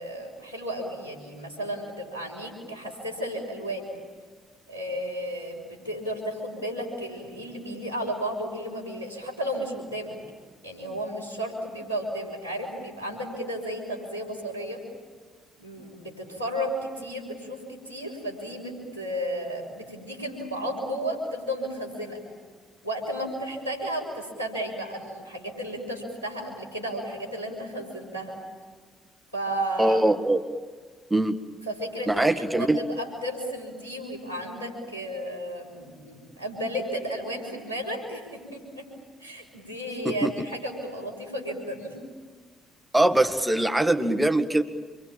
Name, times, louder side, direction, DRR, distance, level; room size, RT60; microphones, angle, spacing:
voice 1, 0.0-3.9 4.7-10.2 10.6-14.8 15.6-22.2 22.8-28.3 29.3-30.0 31.6-38.9 39.2-42.0, equal, 90° left, -2 dB, 5.6 m, -33 dB
voice 2, 29.8-30.4 31.1-31.4 32.1-32.8 40.1-40.3 42.9-44.6, right 1 dB, 10° right, 7 dB, 1.9 m, -22 dB
27.5 x 24.0 x 8.8 m, 1.5 s
figure-of-eight pair, 45°, 0 cm